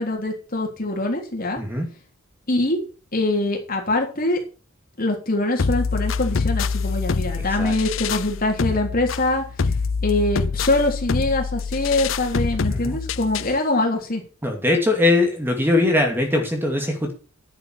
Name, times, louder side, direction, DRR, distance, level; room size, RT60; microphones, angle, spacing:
voice 1, 0.0-1.6 2.5-2.8 3.1-4.4 5.0-9.4 10.0-14.2, left 2 dB, 45° left, 1 dB, 3.4 m, -23 dB
sound 1, 5.6-13.6, left 4 dB, 75° left, 0.6 m, -25 dB
voice 2, 14.4-17.1, left 2 dB, 10° right, 3 dB, 2.5 m, -21 dB
10.5 x 8.1 x 5.9 m, 0.35 s
head